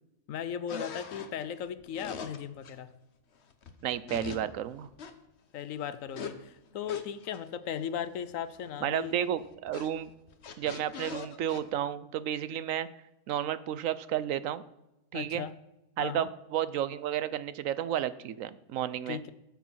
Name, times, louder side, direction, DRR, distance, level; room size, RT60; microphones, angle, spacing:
voice 1, 0.3-2.9 5.5-9.1 15.1-15.5 16.0-16.3 19.1-19.3, left 8 dB, 80° left, 14 dB, 1.1 m, -37 dB
sound 1, 0.7-2.7 3.5-4.4 4.7-5.1 6.1-6.3 6.9-7.4 8.0-8.1 8.3-8.8 9.0-11.6, left 6 dB, 60° left, 1.2 m, -40 dB
voice 2, 3.8-4.9 8.8-10.1 10.6-12.9 13.3-14.6 15.1-15.5 16.0-19.2, right 10 dB, 80° right, 16 dB, 1.0 m, -32 dB
12.5 x 7.5 x 5.6 m, 0.92 s
omnidirectional pair, 1.4 m